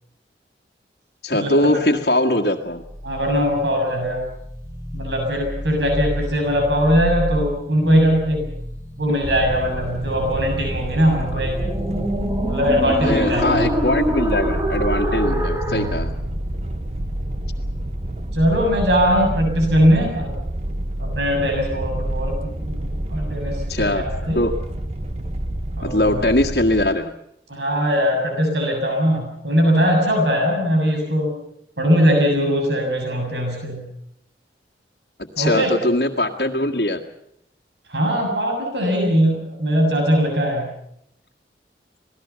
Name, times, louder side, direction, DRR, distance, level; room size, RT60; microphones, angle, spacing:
voice 1, 1.2-2.8 13.0-16.1 23.7-24.0 24.4-24.5 25.8-27.1 35.4-37.0, left 1 dB, 60° left, -2 dB, 1.8 m, -21 dB
sound 1, 2.8-16.0, equal, 15° right, 2.7 m, -28 dB
voice 2, 3.0-4.3 4.9-8.4 9.0-11.6 12.4-13.7 15.0-15.3 15.7-16.0 18.3-20.3 21.0-24.4 25.8-26.2 27.5-31.3 31.8-33.8 35.4-35.7 37.9-40.7, equal, 80° right, 2 dB, 7.1 m, -20 dB
sound 2, 9.2-26.9, right 1 dB, 35° right, 1.2 m, -28 dB
27.0 x 19.0 x 7.0 m, 0.75 s
head